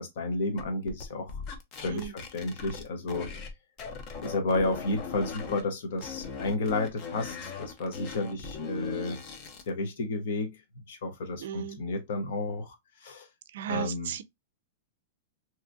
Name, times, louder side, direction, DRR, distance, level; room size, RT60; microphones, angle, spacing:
voice 1, 0.0-1.4 1.7-3.3 4.2-9.2 9.7-10.6 10.9-12.8 13.0-13.3 13.7-14.1, left 2 dB, 60° left, 0.9 m, -32 dB
sound 1, 0.6-3.5 3.8-5.6 6.0-9.7, left 5 dB, 30° left, 0.5 m, -39 dB
voice 2, 11.4-11.8 13.5-14.2, right 10 dB, 65° right, 0.4 m, -35 dB
2.9 x 2.5 x 2.4 m
supercardioid pair, 165°, 0 cm